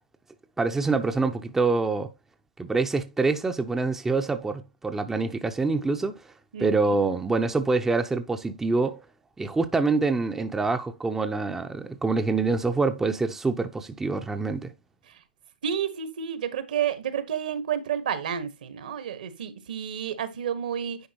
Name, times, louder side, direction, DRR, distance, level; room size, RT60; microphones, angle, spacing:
voice 1, 0.6-2.1 2.6-6.2 6.6-9.0 9.4-14.7, right 3 dB, 10° right, 0.6 m, -25 dB
voice 2, 6.5-7.0 15.6-21.0, right 8 dB, 70° right, 1.5 m, -30 dB
10.0 x 4.7 x 2.9 m
hypercardioid pair, 125°, 5 cm